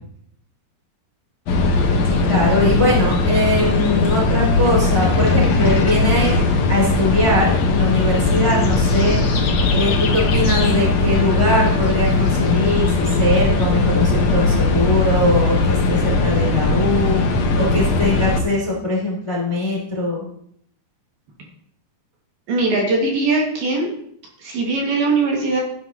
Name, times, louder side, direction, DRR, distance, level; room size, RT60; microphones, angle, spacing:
sound 1, 1.5-18.4, left 3 dB, 80° left, 1.5 m, -18 dB
voice 1, 2.0-6.3 6.7-9.2 9.7-20.2, left 2 dB, 10° left, -4 dB, 2.5 m, -21 dB
voice 2, 22.5-23.9 24.4-25.6, right 3 dB, 65° right, -1 dB, 3.7 m, -20 dB
13.5 x 11.0 x 3.0 m, 0.68 s
omnidirectional pair, 5.2 m